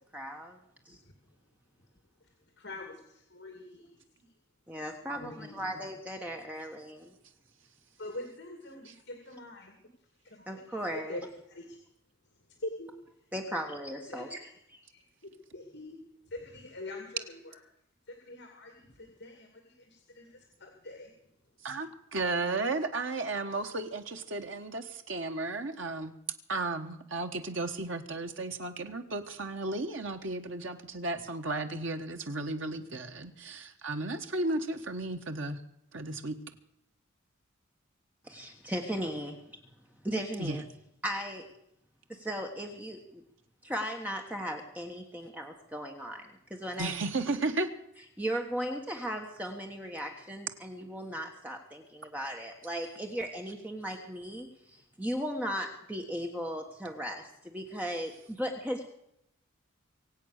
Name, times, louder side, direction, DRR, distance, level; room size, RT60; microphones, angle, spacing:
voice 1, 0.1-0.6 0.8-1.0 4.7-7.1 10.5-11.2 13.3-14.4 14.7-14.8 38.2-39.4 40.0-40.6 41.0-41.4 42.1-43.2 43.6-46.9 48.2-58.8, equal, 10° right, 2 dB, 1.3 m, -37 dB
voice 2, 2.6-4.3 4.7-5.8 8.0-9.8 10.2-11.2 11.5-11.8 12.5-12.9 14.1-14.6 14.9-15.0 15.5-16.0 16.2-17.6 18.1-21.1, left 2 dB, 55° left, 3 dB, 2.5 m, -45 dB
voice 3, 21.6-26.1 26.5-35.6 35.9-36.4 40.4-40.6 46.8-47.7, right 2 dB, 70° right, 5 dB, 1.5 m, -34 dB
24.0 x 8.4 x 6.6 m, 0.78 s
head